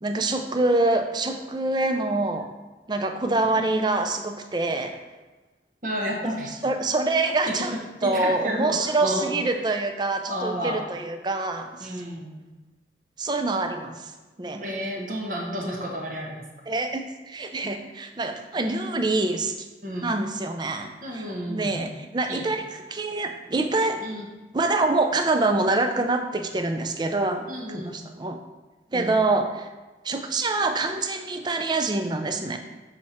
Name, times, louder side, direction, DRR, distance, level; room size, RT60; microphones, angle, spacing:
voice 1, 0.0-2.5 2.9-5.0 6.6-7.7 8.0-11.9 13.2-14.1 14.4-14.6 16.7-19.7 20.0-24.0 24.5-28.4 28.9-29.7 30.0-32.6, right 2 dB, 25° right, 6 dB, 0.4 m, -25 dB
voice 2, 5.8-6.5 7.4-7.7 8.0-9.4 10.3-10.8 11.8-12.4 14.6-16.3 19.8-20.1 21.0-21.8 22.3-22.5 24.0-24.3 27.5-28.0 28.9-29.2, equal, 45° right, -1 dB, 1.2 m, -31 dB
6.6 x 4.2 x 4.4 m, 1.2 s
head